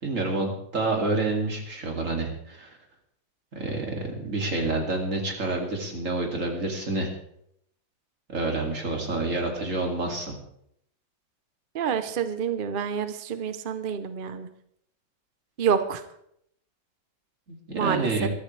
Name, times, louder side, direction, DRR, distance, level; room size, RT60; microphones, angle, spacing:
voice 1, 0.0-2.8 3.6-7.1 8.3-10.3 17.5-18.3, right 2 dB, 40° right, 1 dB, 2.8 m, -28 dB
voice 2, 11.7-14.5 15.6-16.0 17.7-18.3, right 7 dB, 65° right, 9 dB, 0.5 m, -28 dB
22.0 x 13.5 x 3.3 m, 0.74 s
omnidirectional pair, 2.0 m